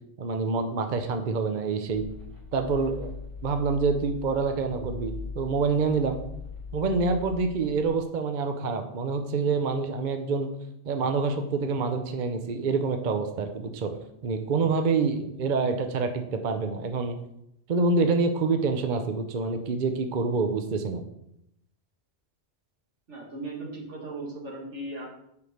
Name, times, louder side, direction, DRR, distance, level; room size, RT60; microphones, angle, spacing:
voice 1, 0.2-2.0 2.5-3.1 3.4-6.2 6.7-10.5 10.9-13.9 14.2-17.2 17.7-21.0, right 4 dB, 50° right, 6 dB, 0.7 m, -26 dB
sound 1, 1.9-7.9, left 4 dB, 25° right, 2.5 m, -40 dB
voice 2, 23.1-25.1, right 2 dB, 80° right, -2 dB, 2.1 m, -37 dB
5.2 x 4.9 x 6.2 m, 0.78 s
omnidirectional pair, 1.2 m